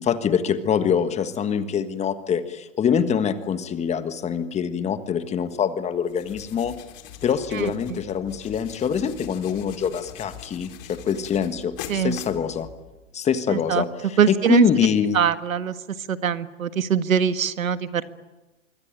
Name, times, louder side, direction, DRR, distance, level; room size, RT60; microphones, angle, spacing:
voice 1, 0.0-6.8 7.2-12.7 13.1-15.2, left 7 dB, 15° left, 10 dB, 1.5 m, -24 dB
sound 1, 6.1-13.1, left 10 dB, 45° left, 4.2 m, -42 dB
voice 2, 7.5-8.0 11.9-12.2 13.5-13.8 14.2-14.7 15.1-15.8 16.1-18.0, right 8 dB, 85° right, 11 dB, 1.8 m, -22 dB
25.5 x 24.5 x 9.1 m, 1.1 s
hypercardioid pair, 135°, 39 cm